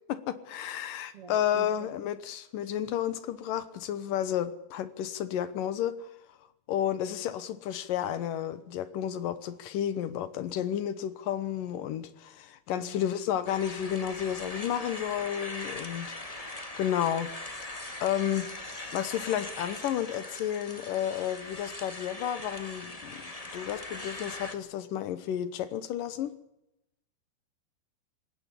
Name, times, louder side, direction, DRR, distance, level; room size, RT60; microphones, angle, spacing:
voice 1, 0.1-6.1 6.7-16.5 16.8-17.3 18.0-18.5 18.9-26.3, left 10 dB, 70° left, 2.6 m, -32 dB
voice 2, 1.1-1.9 12.7-13.2, right 6 dB, 40° right, 2.9 m, -46 dB
sound 1, 13.5-24.5, left 2 dB, 25° left, 0.8 m, -41 dB
19.5 x 16.5 x 10.0 m
omnidirectional pair, 4.3 m